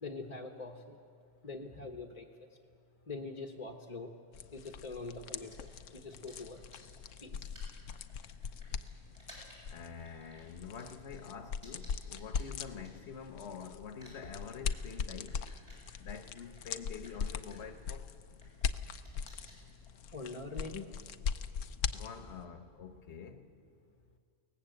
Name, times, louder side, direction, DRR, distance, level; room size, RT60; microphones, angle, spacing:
voice 1, 0.0-1.0 1.4-2.3 3.1-4.1 4.5-6.6 7.2-7.3 20.1-20.9, left 3 dB, 30° left, 1.1 m, -43 dB
sound 1, 4.3-22.4, left 6 dB, 85° left, 1.1 m, -41 dB
sound 2, 5.3-13.5 13.8-22.1, equal, 55° right, 8.3 m, -60 dB
voice 2, 9.7-15.4 16.0-18.1 21.9-23.5, left 6 dB, 65° left, 1.4 m, -46 dB
22.0 x 18.5 x 7.9 m
omnidirectional pair, 1.3 m